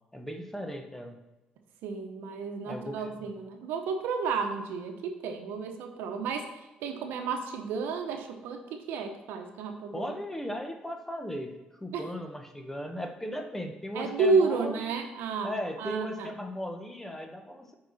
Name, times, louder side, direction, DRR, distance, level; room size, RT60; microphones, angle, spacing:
voice 1, 0.1-1.1 2.7-3.1 9.9-14.8 15.4-17.8, equal, 10° left, 5 dB, 1.1 m, -37 dB
voice 2, 1.8-10.1 11.9-12.1 13.9-16.3, right 4 dB, 80° right, 5 dB, 1.0 m, -31 dB
8.9 x 4.9 x 4.1 m, 1.0 s
supercardioid pair, 80°, 4 cm